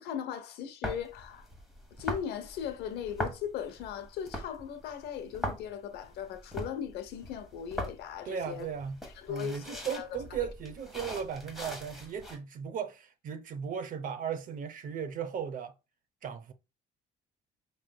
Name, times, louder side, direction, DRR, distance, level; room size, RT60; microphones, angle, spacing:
voice 1, 0.0-1.5 1.9-8.7 9.0-10.1, left 9 dB, 80° left, 0.8 m, -38 dB
sound 1, 0.8-12.4, equal, ahead, 1.5 m, -41 dB
voice 2, 8.2-9.0 9.3-15.7 16.2-16.5, right 7 dB, 55° right, 0.7 m, -36 dB
5.4 x 3.2 x 2.2 m
cardioid pair, 110°, 17 cm